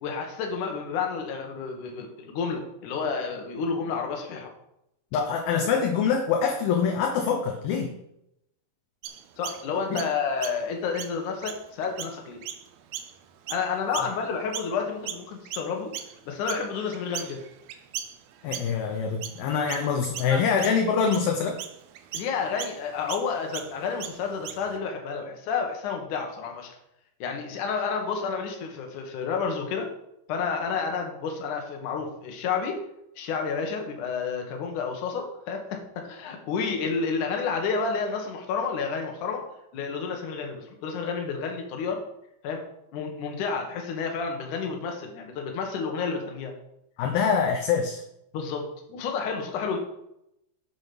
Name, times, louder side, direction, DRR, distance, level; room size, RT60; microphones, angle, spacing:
voice 1, 0.0-4.5 9.4-12.4 13.5-15.9 16.3-17.4 20.3-20.4 22.1-26.7 27.2-29.9 30.3-32.8 33.2-39.4 39.7-42.0 42.4-42.6 42.9-46.5 48.3-49.8, left 5 dB, 55° left, 2 dB, 2.6 m, -30 dB
voice 2, 5.1-7.9 9.9-10.0 18.4-21.6 47.0-48.0, left 6 dB, 75° left, 3 dB, 2.4 m, -25 dB
Chirp tweet, 9.0-14.8 15.1-24.8, right 10 dB, 75° right, 2.3 m, -39 dB
8.9 x 7.2 x 6.1 m, 0.82 s
omnidirectional pair, 5.1 m